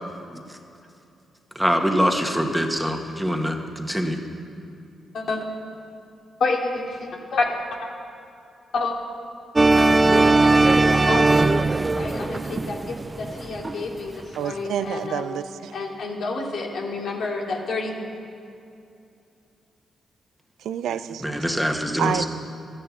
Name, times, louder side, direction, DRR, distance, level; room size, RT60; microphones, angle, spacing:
voice 1, 1.6-4.2 21.2-22.3, equal, ahead, 3 dB, 1.9 m, -24 dB
voice 2, 6.4-7.9 8.7-8.9 9.7-11.6 11.9-15.3 15.7-17.9, left 3 dB, 70° left, 0 dB, 2.7 m, -29 dB
sound 1, 9.6-14.0, right 2 dB, 25° right, 0.5 m, -19 dB
voice 3, 14.4-15.7 20.6-21.2 22.0-22.2, right 9 dB, 80° right, 12 dB, 0.5 m, -28 dB
13.5 x 11.5 x 8.9 m, 2.6 s
supercardioid pair, 60°, 0 cm